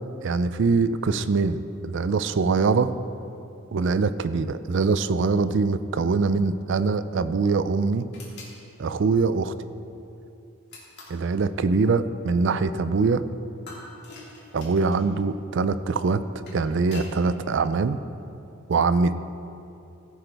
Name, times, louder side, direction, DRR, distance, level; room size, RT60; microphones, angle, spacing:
voice 1, 0.2-2.9 3.7-8.1 8.8-9.5 11.1-13.3 14.5-16.2 16.5-18.0 18.7-19.2, right 4 dB, 55° right, 13 dB, 0.4 m, -23 dB
sound 1, 8.1-8.6 10.7-11.2 13.7-15.1 16.2-17.1, left 2 dB, 50° left, 2.7 m, -44 dB
15.5 x 7.8 x 3.4 m, 2.8 s
head